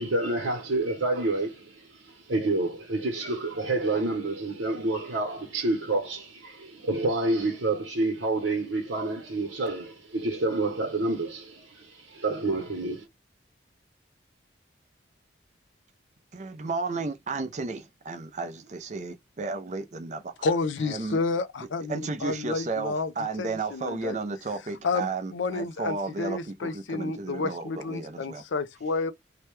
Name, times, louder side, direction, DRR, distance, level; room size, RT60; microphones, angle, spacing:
voice 1, 0.0-13.0, right 2 dB, 85° right, 1.0 m, -28 dB
voice 2, 16.3-20.5 20.8-21.2 21.9-28.4, right 3 dB, 40° right, 0.5 m, -33 dB
voice 3, 20.4-23.1 23.4-24.2 24.8-29.1, left 4 dB, 75° left, 0.4 m, -30 dB
2.8 x 2.2 x 3.1 m
head